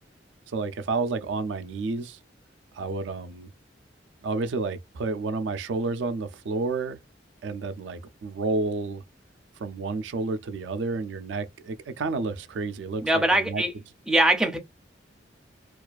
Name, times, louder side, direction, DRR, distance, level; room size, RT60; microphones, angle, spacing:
voice 1, 0.5-2.2 2.7-3.5 4.2-7.0 7.4-9.0 9.6-13.6, right 3 dB, 75° right, 0.4 m, -30 dB
voice 2, 13.0-13.7 14.1-14.6, right 1 dB, 5° right, 0.4 m, -22 dB
2.4 x 2.3 x 2.3 m
head